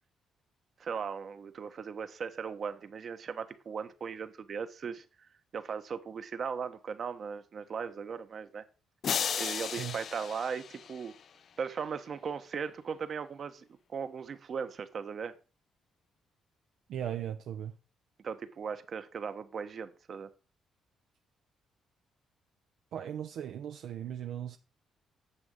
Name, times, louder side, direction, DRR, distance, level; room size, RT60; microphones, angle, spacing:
voice 1, 0.8-8.6 9.4-11.2 11.6-15.3 18.2-20.3, right 6 dB, 50° right, 1.2 m, -38 dB
sound 1, 9.0-11.4, left 7 dB, 60° left, 0.6 m, -35 dB
voice 2, 16.9-17.7 22.9-24.6, right 10 dB, 75° right, 0.7 m, -37 dB
9.7 x 7.3 x 5.4 m
cardioid pair, 90°, 0 cm